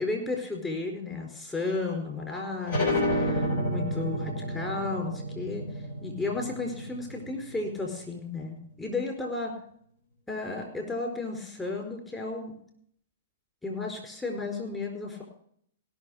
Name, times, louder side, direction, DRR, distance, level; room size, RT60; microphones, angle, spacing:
voice 1, 0.0-5.6 6.0-9.5 10.3-12.6 13.6-15.2, left 3 dB, 15° left, 1 dB, 4.5 m, -33 dB
sound 1, 2.7-7.9, equal, 60° left, 3.2 m, -30 dB
18.0 x 6.3 x 6.4 m, 0.65 s
hypercardioid pair, 125°, 0 cm